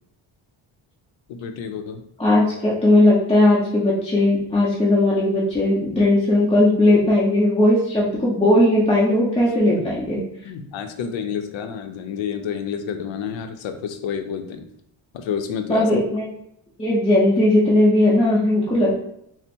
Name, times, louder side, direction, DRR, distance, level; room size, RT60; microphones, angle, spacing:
voice 1, 1.3-2.0 9.7-9.8 10.4-14.7 15.1-15.9, left 7 dB, 75° left, 6 dB, 0.7 m, -29 dB
voice 2, 2.2-10.2 15.7-16.2 16.8-19.0, left 1 dB, 15° left, -7 dB, 0.9 m, -18 dB
4.1 x 2.1 x 4.3 m, 0.74 s
cardioid pair, 105°, 47 cm